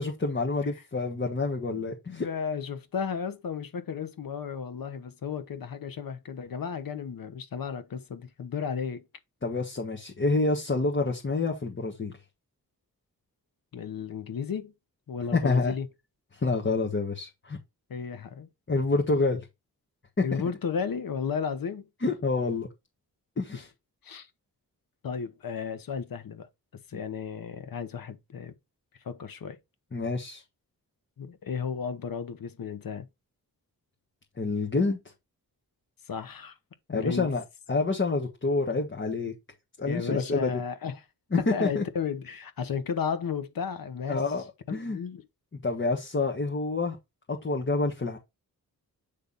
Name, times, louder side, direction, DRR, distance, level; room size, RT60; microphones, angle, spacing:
voice 1, 0.0-2.3 9.4-12.1 15.3-15.7 16.3-17.6 18.7-19.4 20.3-20.4 22.0-22.7 23.4-23.7 26.9-27.0 29.9-30.4 34.4-35.0 36.9-37.4 37.7-39.3 39.8-40.5 41.3-41.8 44.1-44.4 44.7-45.0 45.6-47.0 47.3-48.2, left 3 dB, 30° left, 1.4 m, -27 dB
voice 2, 2.1-9.0 13.7-14.7 15.1-15.9 17.9-18.5 20.2-21.9 23.5-23.6 24.0-24.3 25.0-26.5 26.7-28.5 29.0-29.6 31.2-33.1 36.1-36.5 36.9-37.3 39.8-41.0 41.4-44.2 44.7-45.2, left 6 dB, 65° left, 1.1 m, -34 dB
8.5 x 3.4 x 3.9 m
wide cardioid pair, 100°, 37 cm